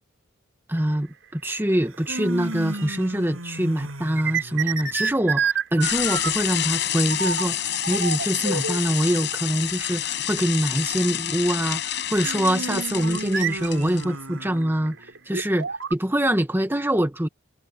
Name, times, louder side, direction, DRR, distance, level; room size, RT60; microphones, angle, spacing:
voice 1, 0.7-15.0 15.3-17.3, right 1 dB, 10° right, 1.3 m, -24 dB
sound 1, 0.8-1.0 1.7-3.3 3.5-6.6 7.1-7.5 7.7-9.0 9.8-9.9 10.3-10.4 11.0-11.1 12.7-15.9, right 5 dB, 60° right, 6.3 m, -28 dB
sound 2, 1.8-5.1 12.2-15.2, right 1 dB, 85° right, 6.8 m, -35 dB
sound 3, 5.8-14.0, left 11 dB, 55° left, 7.8 m, -28 dB
head